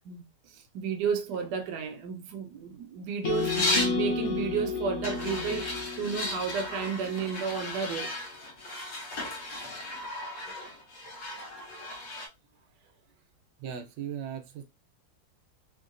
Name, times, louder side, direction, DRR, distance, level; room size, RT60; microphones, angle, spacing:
voice 1, 0.7-8.1, right 6 dB, 70° right, 1.2 m, -32 dB
sound 1, 3.2-7.4, left 5 dB, 75° left, 0.6 m, -32 dB
sound 2, 3.3-4.0 5.0-12.3, left 1 dB, 50° left, 1.1 m, -35 dB
voice 2, 13.6-14.6, right 8 dB, 90° right, 1.3 m, -37 dB
3.7 x 2.1 x 2.5 m
omnidirectional pair, 2.0 m